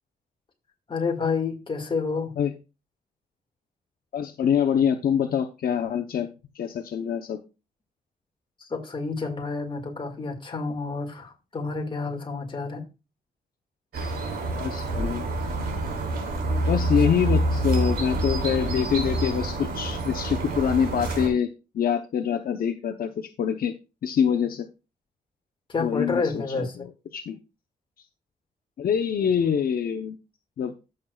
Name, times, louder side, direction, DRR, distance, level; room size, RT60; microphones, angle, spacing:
voice 1, 0.9-2.3 8.6-12.8 25.7-26.9, left 4 dB, 30° left, 3 dB, 1.9 m, -29 dB
voice 2, 4.1-6.3 6.6-7.4 14.6-15.3 16.7-23.7 24.0-24.7 25.8-26.7 27.1-27.4 28.8-30.2 30.6-30.7, left 8 dB, 65° left, 5 dB, 0.8 m, -25 dB
sound 1, 13.9-21.3, right 2 dB, 75° right, 2.7 m, -27 dB
14.5 x 6.5 x 2.3 m, 0.29 s
wide cardioid pair, 150°, 16 cm